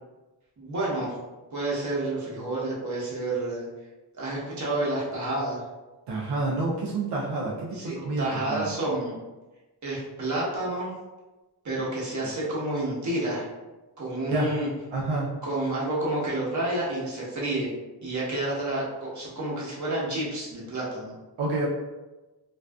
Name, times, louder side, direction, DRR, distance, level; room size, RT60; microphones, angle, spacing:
voice 1, 0.6-1.2 1.5-3.7 4.1-5.6 7.7-9.2 9.8-10.9 11.6-13.5 14.0-14.7 15.4-17.7 18.0-21.1, right 2 dB, 45° right, -6 dB, 1.0 m, -29 dB
voice 2, 6.1-8.7 12.2-12.3 14.3-14.5 14.9-15.3 21.4-21.7, right 2 dB, 85° right, -4 dB, 0.5 m, -29 dB
2.5 x 2.3 x 2.3 m, 1.1 s
cardioid pair, 70°, 42 cm